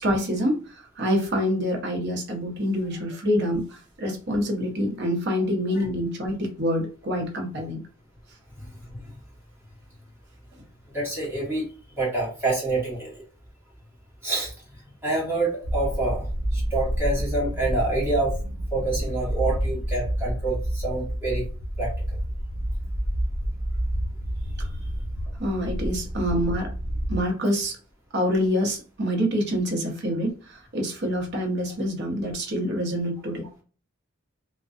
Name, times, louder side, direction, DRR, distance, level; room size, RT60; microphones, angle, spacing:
voice 1, 0.0-7.8 25.4-26.7 27.1-27.8 28.1-33.5, equal, 55° right, 2 dB, 0.7 m, -26 dB
voice 2, 8.6-9.2 10.9-11.7 12.0-13.2 14.2-14.5 15.0-18.3 18.7-21.4 21.8-21.9, right 2 dB, 10° right, -6 dB, 1.2 m, -27 dB
sound 1, 15.6-27.2, equal, 40° left, 1.3 m, -29 dB
2.5 x 2.1 x 2.4 m, 0.36 s
head